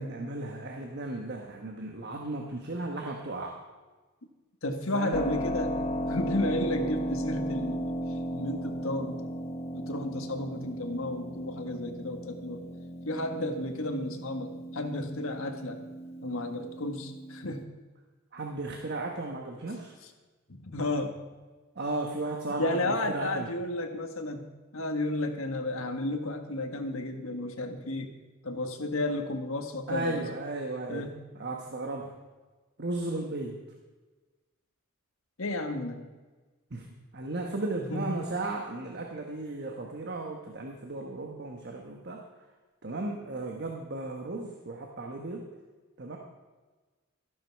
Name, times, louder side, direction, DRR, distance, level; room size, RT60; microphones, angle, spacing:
voice 1, 0.0-3.6 4.9-5.2 18.3-19.9 21.7-23.5 29.9-32.1 32.8-33.6 36.7-42.2 42.8-45.5 46.0-46.2, right 2 dB, 50° right, 2 dB, 1.3 m, -35 dB
voice 2, 4.6-9.4 9.7-12.6 13.0-15.8 16.2-17.7 20.5-21.2 22.6-28.1 28.4-30.3 30.9-31.2 35.4-36.0 37.9-38.2, left 1 dB, 70° left, 5 dB, 1.5 m, -33 dB
Keyboard (musical), 5.1-17.6, equal, 30° left, 0.7 m, -35 dB
13.5 x 11.5 x 4.7 m, 1.3 s
head